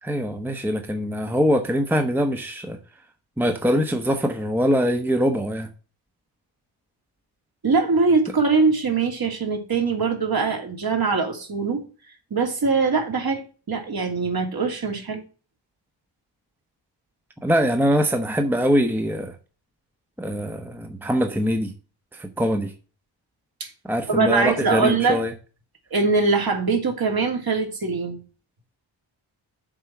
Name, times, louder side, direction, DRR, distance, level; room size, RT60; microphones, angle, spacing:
voice 1, 0.0-2.8 3.4-5.7 17.4-19.3 20.2-21.7 22.2-22.7 23.8-25.3, equal, 5° right, 1.0 m, -23 dB
voice 2, 7.6-11.8 12.3-13.4 13.7-15.2 23.6-23.7 24.1-25.2 25.9-28.2, right 4 dB, 50° right, 2.8 m, -22 dB
7.6 x 4.7 x 7.1 m
cardioid pair, 95°, 47 cm